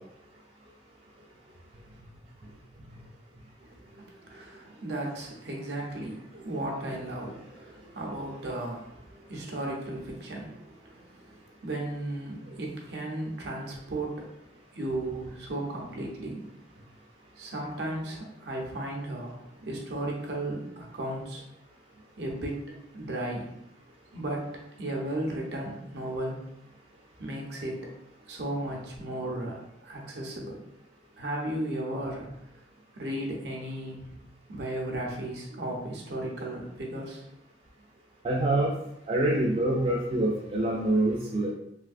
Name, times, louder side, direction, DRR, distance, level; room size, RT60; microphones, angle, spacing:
voice 1, 3.6-11.2 11.6-14.3 14.7-16.4 17.4-21.4 22.2-23.5 24.1-24.5 24.8-26.4 27.2-27.8 28.3-30.6 31.2-32.3 33.0-34.0 34.5-37.2, right 1 dB, 65° right, -2 dB, 0.7 m, -35 dB
voice 2, 38.2-38.7 39.1-41.5, right 1 dB, 30° right, -3 dB, 0.3 m, -25 dB
3.2 x 2.6 x 2.4 m, 0.81 s
head